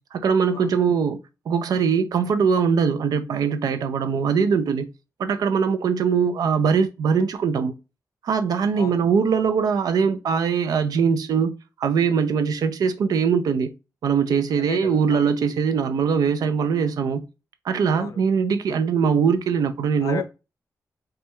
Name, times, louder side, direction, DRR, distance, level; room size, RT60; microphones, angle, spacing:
voice 1, 0.1-4.9 5.2-7.7 8.2-11.5 11.8-13.7 14.0-17.2 17.6-20.2, right 6 dB, 80° right, 0.4 m, -21 dB
voice 2, 14.7-15.2 17.9-18.2 20.0-20.2, left 7 dB, 65° left, 0.4 m, -33 dB
3.1 x 2.3 x 2.8 m
wide cardioid pair, 140°, 6 cm